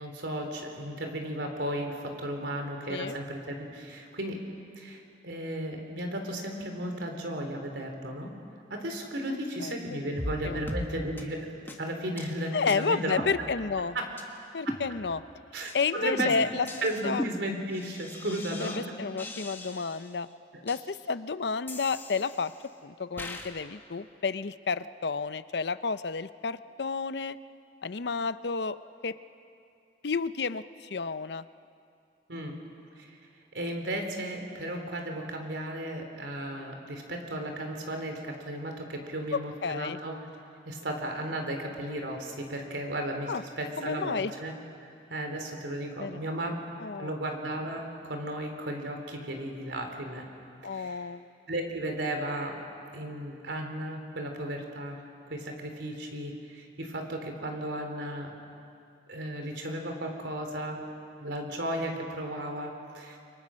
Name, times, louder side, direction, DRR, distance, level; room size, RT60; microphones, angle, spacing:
voice 1, 0.0-4.4 4.8-8.3 8.7-11.5 11.8-13.2 13.9-14.0 15.5-16.3 16.8-18.8 32.3-32.6 33.0-33.2 33.5-40.2 40.7-44.5 45.1-46.6 47.0-50.3 50.7-51.1 51.5-52.6 52.9-55.0 55.3-58.3 59.1-60.9 61.2-63.2, right 1 dB, 85° right, 3 dB, 3.6 m, -35 dB
voice 2, 9.6-10.2 10.4-10.6 12.5-14.0 14.5-15.2 15.7-16.7 17.0-17.2 18.6-20.3 20.6-22.5 22.8-27.4 27.8-28.8 29.0-29.1 30.0-31.4 39.3-40.0 43.3-43.4 43.8-44.3 46.0-46.2 46.8-47.1 50.6-51.3, left 5 dB, 70° left, 14 dB, 0.6 m, -31 dB
sound 1, 10.2-10.4 10.7-10.9 11.2-11.3 11.7-11.8 12.2-12.3 12.7-12.8 13.2-13.8 14.2-14.3 14.7-15.3 15.7-15.8 16.2-18.8 19.2-20.1 20.7-20.8 21.7-22.6 23.2-23.5, left 1 dB, 10° left, 1.7 m, -38 dB
29.5 x 23.0 x 6.4 m, 2.5 s
head